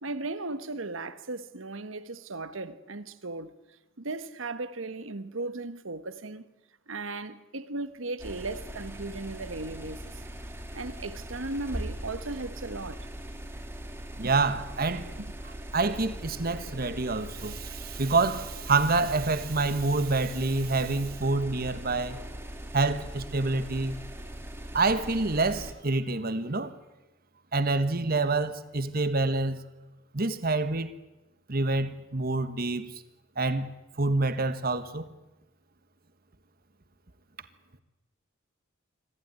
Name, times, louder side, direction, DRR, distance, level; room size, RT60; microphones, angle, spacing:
voice 1, 0.0-3.5 4.0-6.4 6.9-10.2 10.7-13.1 14.2-14.3 15.2-15.3, right 2 dB, 75° right, 1.3 m, -36 dB
sound 1, 8.2-25.7, right 1 dB, 15° right, 2.9 m, -40 dB
voice 2, 14.2-15.1 15.7-22.2 22.7-24.0 24.7-26.7 27.5-29.6 30.1-30.9 31.5-32.9 33.4-35.1, right 3 dB, 50° right, 1.4 m, -27 dB
25.5 x 15.0 x 9.6 m
head